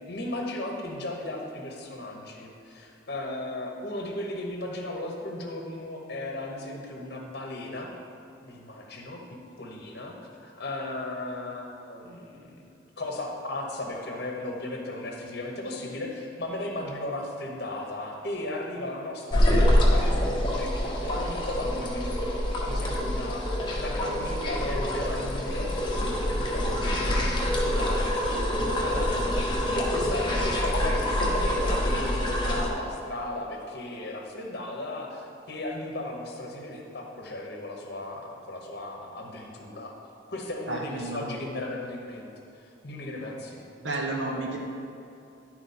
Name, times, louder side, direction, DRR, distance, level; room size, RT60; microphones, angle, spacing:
voice 1, 0.0-7.9 8.4-10.2 10.4-12.6 13.0-28.3 28.8-39.9 40.3-42.3 42.5-43.6, left 1 dB, 55° left, 1 dB, 1.0 m, -36 dB
sound 1, 19.3-32.7, equal, 25° left, 0.9 m, -26 dB
voice 2, 40.7-41.4 43.8-44.6, right 2 dB, 70° right, 0 dB, 1.2 m, -31 dB
11.0 x 4.3 x 4.2 m, 2.7 s
head